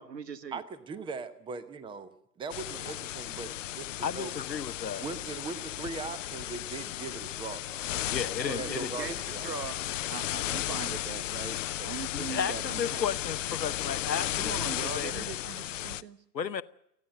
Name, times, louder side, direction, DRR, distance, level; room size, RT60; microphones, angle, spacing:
voice 1, 0.0-0.6 2.7-2.8 8.4-13.0 14.4-16.2, right 6 dB, 75° right, 1.5 m, -41 dB
voice 2, 0.5-4.3 5.0-9.5, right 4 dB, 10° right, 0.9 m, -40 dB
sound 1, 2.5-16.0, left 13 dB, 50° left, 0.7 m, -35 dB
voice 3, 4.0-5.0 8.1-8.9 12.1-15.3 16.3-16.6, left 7 dB, 85° left, 1.0 m, -34 dB
29.0 x 10.0 x 9.1 m
figure-of-eight pair, 110°, 50 cm